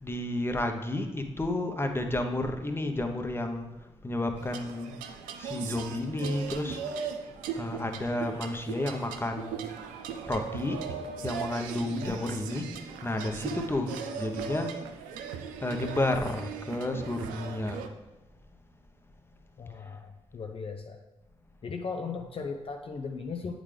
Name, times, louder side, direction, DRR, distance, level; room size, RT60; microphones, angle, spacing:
voice 1, 0.0-4.9 5.4-6.8 7.5-9.6 10.2-10.8 11.2-14.8 15.6-17.8, left 1 dB, 15° left, 5 dB, 0.9 m, -31 dB
sound 1, 4.4-17.9, right 6 dB, 85° right, 0.4 m, -38 dB
voice 2, 11.8-12.2 19.6-21.0 21.6-23.5, left 5 dB, 45° left, 4 dB, 0.6 m, -37 dB
8.4 x 3.7 x 3.4 m, 1.0 s
hypercardioid pair, 40°, 14 cm